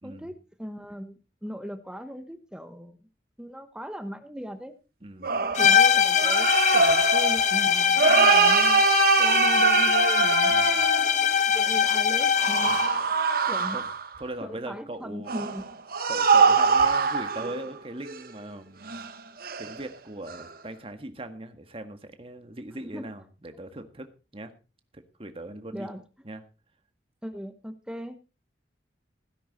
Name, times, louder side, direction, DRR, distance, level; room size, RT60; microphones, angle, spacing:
voice 1, 0.0-3.0 3.4-4.7 5.6-8.8 9.2-10.5 11.5-12.7 13.5-13.8 14.4-15.6 22.8-23.1 25.7-26.0 27.2-28.2, equal, 5° right, 10 dB, 1.0 m, -38 dB
voice 2, 5.0-5.4 10.5-10.9 12.7-12.9 13.7-13.9 14.2-15.3 16.1-19.0 19.6-24.1 24.3-24.5 24.9-25.9 26.2-26.4, right 1 dB, 30° right, 7 dB, 1.7 m, -40 dB
sound 1, 5.2-11.3 12.4-14.2 15.3-17.7 18.1-18.2 18.9-19.1 19.4-19.8 20.3-20.4, right 5 dB, 55° right, 1.1 m, -23 dB
sound 2, 5.6-13.0, left 7 dB, 40° left, 1.0 m, -22 dB
17.0 x 10.0 x 4.2 m, 0.32 s
head